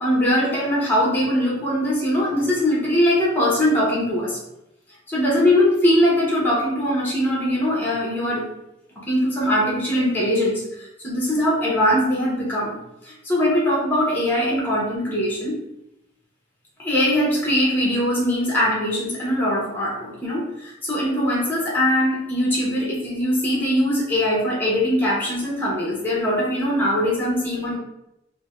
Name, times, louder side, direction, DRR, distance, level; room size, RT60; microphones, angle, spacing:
voice 1, 0.0-4.4 5.1-8.5 9.0-15.6 16.8-27.8, equal, 10° left, -5 dB, 0.7 m, -21 dB
3.5 x 2.1 x 3.0 m, 0.85 s
head